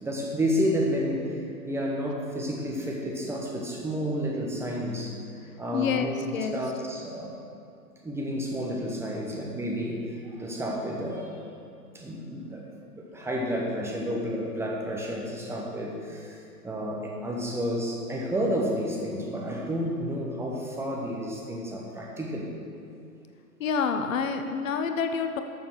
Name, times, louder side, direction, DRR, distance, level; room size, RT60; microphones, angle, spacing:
voice 1, 0.0-5.2 5.6-7.4 8.0-11.4 11.9-12.6 12.9-22.5, equal, 5° right, -2 dB, 1.0 m, -31 dB
voice 2, 5.7-6.6 23.6-25.4, left 6 dB, 55° left, 7 dB, 0.9 m, -28 dB
12.5 x 6.8 x 6.4 m, 2.5 s
hypercardioid pair, 125°, 46 cm